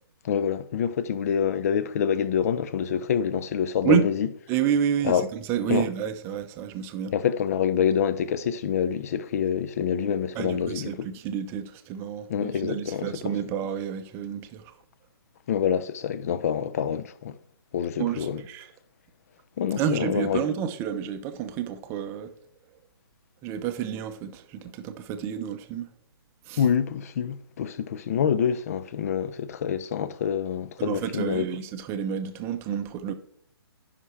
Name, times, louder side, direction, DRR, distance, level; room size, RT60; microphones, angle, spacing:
voice 1, 0.2-4.3 5.0-5.3 5.7-5.9 7.1-11.1 12.3-13.1 15.5-17.4 17.7-18.4 19.6-20.5 26.6-31.5, left 8 dB, 35° left, 0.6 m, -26 dB
voice 2, 4.5-7.1 10.3-14.7 18.0-18.7 19.8-22.3 23.4-25.9 26.5-26.6 30.8-33.1, right 8 dB, 15° right, 0.7 m, -29 dB
15.5 x 5.8 x 3.2 m
figure-of-eight pair, 130°, 13 cm